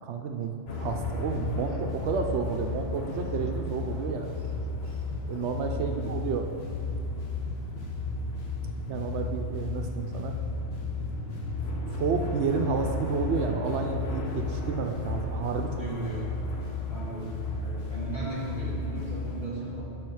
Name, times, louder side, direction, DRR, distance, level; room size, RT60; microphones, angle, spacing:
voice 1, 0.0-4.4 5.3-6.5 8.9-10.3 11.9-15.7, right 5 dB, 70° right, 4 dB, 0.8 m, -31 dB
sound 1, 0.7-19.5, left 2 dB, 60° left, 1.2 m, -33 dB
voice 2, 5.7-6.2 15.8-16.3 16.9-19.9, right 2 dB, 40° left, -8 dB, 2.4 m, -37 dB
8.7 x 6.2 x 4.8 m, 2.6 s
omnidirectional pair, 1.3 m